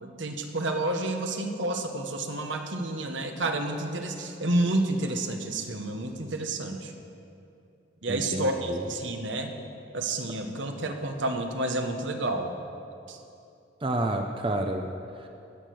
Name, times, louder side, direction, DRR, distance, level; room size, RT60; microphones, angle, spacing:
voice 1, 0.0-6.9 8.0-9.5 9.9-12.5 13.1-13.2, right 2 dB, 70° right, 4 dB, 1.3 m, -30 dB
voice 2, 8.1-8.8 13.8-14.9 15.2-15.3, right 1 dB, 25° right, 4 dB, 0.7 m, -29 dB
18.0 x 6.6 x 7.8 m, 2.6 s
head